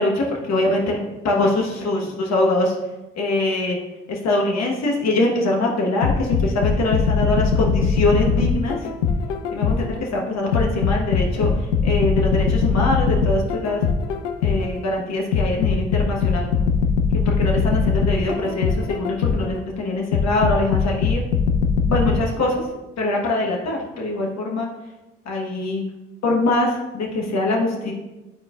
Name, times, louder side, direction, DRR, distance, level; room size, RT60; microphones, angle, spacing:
voice 1, 0.0-2.7 3.1-3.8 4.1-8.9 9.5-13.8 14.4-16.5 17.2-21.2 21.9-22.6 23.0-24.7 25.2-25.8 26.2-27.9, left 2 dB, 45° left, 0 dB, 1.2 m, -23 dB
sound 1, 6.0-10.0 10.5-14.8 15.3-19.6 20.1-22.2, left 5 dB, 70° left, 0.6 m, -20 dB
11.0 x 4.4 x 2.4 m, 1.1 s
figure-of-eight pair, 45°, 38 cm